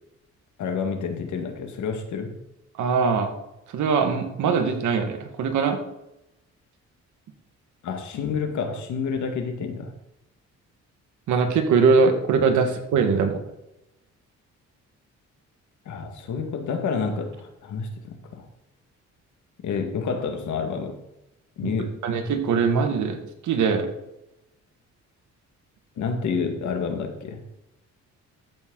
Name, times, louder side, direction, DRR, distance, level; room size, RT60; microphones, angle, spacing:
voice 1, 0.6-2.4 7.8-9.9 15.9-18.5 19.6-21.0 21.6-22.0 26.0-27.4, left 5 dB, 70° left, 5 dB, 2.0 m, -29 dB
voice 2, 2.8-3.3 3.7-5.8 11.3-13.4 21.6-21.7 22.0-23.2 23.4-23.9, right 5 dB, 75° right, 6 dB, 1.7 m, -21 dB
14.0 x 6.2 x 4.0 m, 0.90 s
cardioid pair, 90°, 30 cm